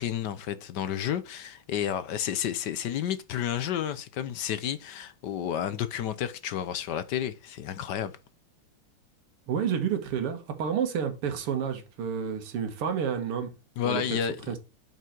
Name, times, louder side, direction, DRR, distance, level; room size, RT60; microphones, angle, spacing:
voice 1, 0.0-8.2 13.8-14.4, left 9 dB, 65° left, 1.2 m, -31 dB
voice 2, 9.5-13.5 13.8-14.0 14.5-14.6, right 7 dB, 85° right, 2.4 m, -29 dB
7.6 x 5.9 x 4.5 m
omnidirectional pair, 2.4 m